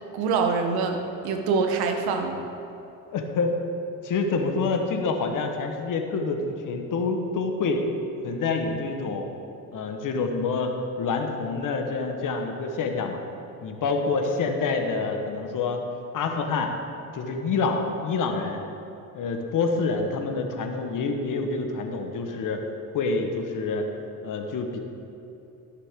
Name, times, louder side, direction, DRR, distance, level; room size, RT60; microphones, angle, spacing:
voice 1, 0.1-2.5, right 4 dB, 75° right, 5 dB, 1.2 m, -25 dB
voice 2, 3.1-3.5 4.0-7.8 8.2-9.3 9.7-13.2 13.6-15.8 16.1-16.7 17.1-18.6 19.1-22.6 22.9-23.9 24.2-24.8, left 4 dB, 55° left, 4 dB, 1.4 m, -27 dB
14.5 x 6.6 x 3.8 m, 2.8 s
supercardioid pair, 80°, 37 cm